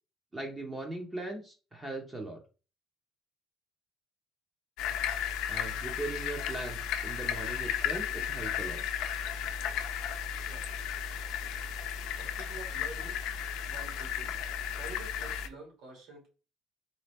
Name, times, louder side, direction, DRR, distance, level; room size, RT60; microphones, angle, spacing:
voice 1, 0.3-2.4 5.5-8.8, right 2 dB, 10° right, 2 dB, 0.6 m, -39 dB
sound 1, 4.8-15.5, left 8 dB, 85° left, 0.5 m, -34 dB
voice 2, 12.2-13.2 13.7-14.4 14.7-16.3, right 3 dB, 75° right, 0 dB, 2.3 m, -47 dB
4.1 x 3.3 x 3.3 m, 0.34 s
cardioid pair, 165°, 0 cm